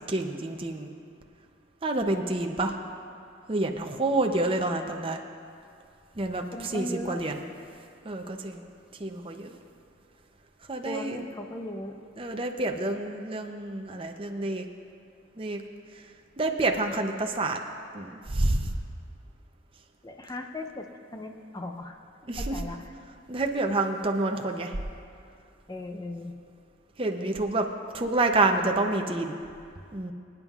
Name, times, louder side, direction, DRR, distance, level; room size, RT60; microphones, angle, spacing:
voice 1, 0.1-0.9 1.8-2.8 3.5-5.2 6.2-6.4 6.7-7.4 8.0-8.7 9.0-9.6 10.7-11.3 12.2-14.6 15.4-15.6 16.4-17.6 17.9-18.7 22.3-22.6 23.3-24.7 27.0-27.7 27.9-29.4 29.9-30.1, right 2 dB, 25° right, 3 dB, 0.6 m, -28 dB
voice 2, 6.5-7.2 10.8-12.0 20.0-22.0 22.4-22.9 25.7-26.3, left 1 dB, 20° left, 4 dB, 0.7 m, -37 dB
25.5 x 9.0 x 2.4 m, 2.4 s
head